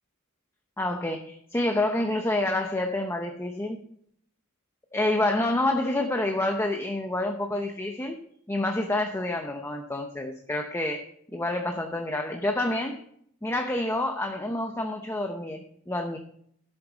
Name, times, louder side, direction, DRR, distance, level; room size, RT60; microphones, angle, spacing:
voice 1, 0.8-3.8 4.9-8.2 8.5-13.0 13.4-16.2, left 1 dB, 10° left, 4 dB, 0.7 m, -28 dB
12.0 x 8.1 x 3.9 m, 0.67 s
head